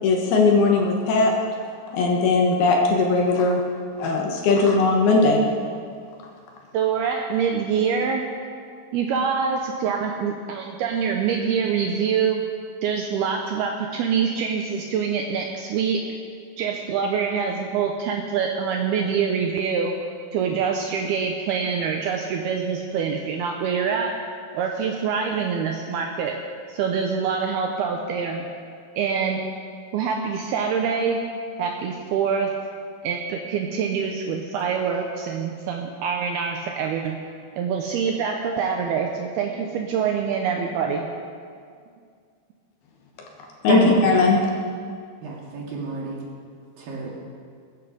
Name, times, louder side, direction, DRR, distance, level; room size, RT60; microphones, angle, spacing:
voice 1, 0.0-1.4 1.9-3.6 4.0-5.5 43.6-44.5, left 3 dB, 65° left, 1 dB, 2.8 m, -19 dB
voice 2, 6.7-8.3 8.9-12.4 12.8-16.0 16.6-19.9 20.3-24.2 24.5-26.3 26.7-28.5 29.0-29.5 29.9-31.2 31.6-32.5 33.0-37.2 37.6-41.1, right 6 dB, 75° right, 2 dB, 2.4 m, -25 dB
voice 3, 45.2-46.2 46.8-47.1, right 3 dB, 55° right, -3 dB, 3.6 m, -28 dB
21.5 x 9.8 x 5.2 m, 2.2 s
omnidirectional pair, 5.2 m